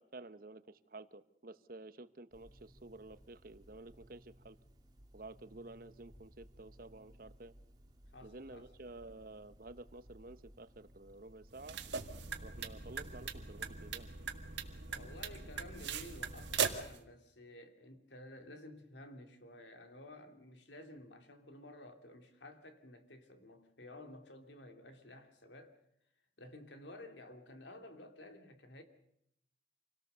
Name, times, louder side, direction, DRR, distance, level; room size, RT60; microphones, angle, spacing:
voice 1, 0.0-4.6 5.1-7.5 8.2-11.8 12.4-14.1, right 2 dB, 50° right, 0.9 m, -52 dB
sound 1, 2.3-16.6, equal, 20° right, 2.0 m, -59 dB
voice 2, 8.1-8.7 14.9-25.8 26.4-28.8, left 1 dB, 75° left, 2.7 m, -53 dB
sound 2, 11.5-17.0, right 6 dB, 75° right, 1.9 m, -40 dB
27.0 x 18.0 x 6.8 m
head